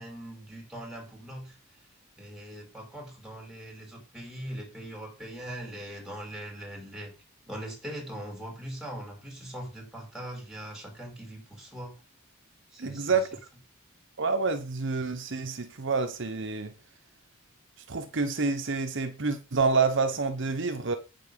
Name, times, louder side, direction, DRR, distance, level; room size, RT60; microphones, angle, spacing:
voice 1, 0.0-1.6 2.2-7.1 7.5-11.9 12.7-13.2, right 1 dB, 5° right, 4.4 m, -41 dB
voice 2, 12.8-13.3 14.2-16.7 17.9-21.0, right 4 dB, 60° right, 0.9 m, -28 dB
8.3 x 7.3 x 5.3 m
head